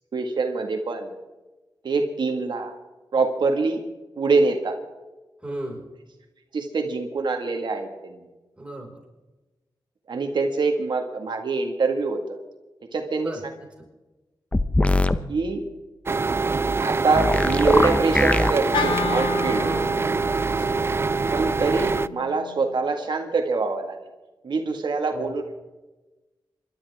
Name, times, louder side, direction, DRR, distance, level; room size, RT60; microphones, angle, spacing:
voice 1, 0.1-1.1 1.8-2.7 3.1-3.8 4.2-4.8 6.5-8.2 10.1-12.2 12.9-13.3 15.3-15.6 16.8-19.6 21.3-24.0 24.4-25.5, right 4 dB, 65° right, 4 dB, 1.9 m, -24 dB
voice 2, 5.4-5.8 8.6-9.0 13.2-13.5 19.6-19.9 20.4-20.7 25.1-25.3, right 1 dB, 15° right, -1 dB, 5.3 m, -35 dB
sound 1, 14.5-15.2 17.1-18.5, left 2 dB, 15° left, 0.8 m, -21 dB
sound 2, 16.1-22.1, right 4 dB, 30° right, 0.4 m, -24 dB
Wind instrument woodwind instrument, 18.7-23.0, left 6 dB, 75° left, 1.8 m, -33 dB
27.5 x 12.5 x 3.6 m, 1.1 s
wide cardioid pair, 105°, 8 cm